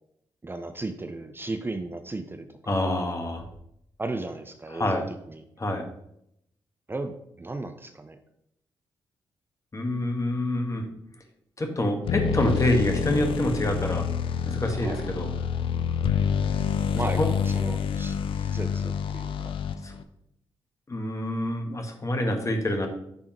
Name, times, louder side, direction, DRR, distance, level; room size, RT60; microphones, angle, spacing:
voice 1, 0.4-2.8 4.0-5.4 6.9-8.2 14.8-15.1 16.9-19.5, right 2 dB, 25° right, 8 dB, 0.5 m, -35 dB
voice 2, 2.7-3.4 4.7-5.1 5.6-5.9 9.7-10.9 11.6-14.1 14.4-15.3 17.2-17.3 19.8-19.9 20.9-22.9, left 1 dB, 35° left, 4 dB, 1.4 m, -27 dB
sound 1, 12.0-20.0, left 6 dB, 70° left, 0.4 m, -27 dB
9.6 x 3.6 x 3.0 m, 0.76 s
supercardioid pair, 45°, 9 cm